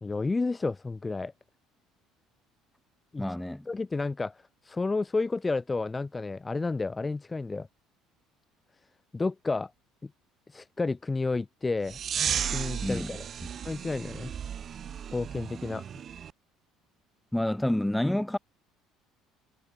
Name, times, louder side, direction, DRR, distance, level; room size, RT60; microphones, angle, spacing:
voice 1, 0.0-1.3 3.1-3.2 3.7-7.7 9.1-9.7 10.0-10.1 10.5-12.0 12.5-13.2 13.6-14.3 15.1-15.8, left 3 dB, 20° left, 1.0 m, -31 dB
voice 2, 3.2-3.7 12.8-13.1 17.3-18.4, left 1 dB, 5° left, 2.5 m, -28 dB
sound 1, 11.9-16.3, right 8 dB, 45° right, 0.5 m, -34 dB
hypercardioid pair, 60°, 0 cm